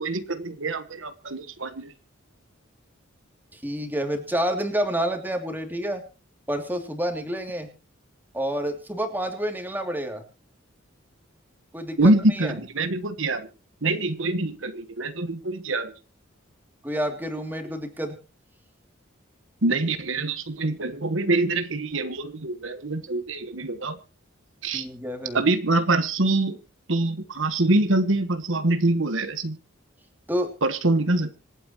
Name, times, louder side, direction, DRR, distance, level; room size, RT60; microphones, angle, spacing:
voice 1, 0.0-1.9 12.0-13.5 13.8-15.9 19.6-24.0 24.6-24.9 25.3-26.6 26.9-29.6 30.6-31.3, right 2 dB, 75° right, 10 dB, 1.4 m, -24 dB
voice 2, 3.5-6.0 6.5-7.7 8.3-10.2 11.7-12.5 16.8-18.2 24.7-25.4 30.3-30.5, equal, 10° right, 4 dB, 2.8 m, -28 dB
26.5 x 9.2 x 3.1 m, 0.32 s
head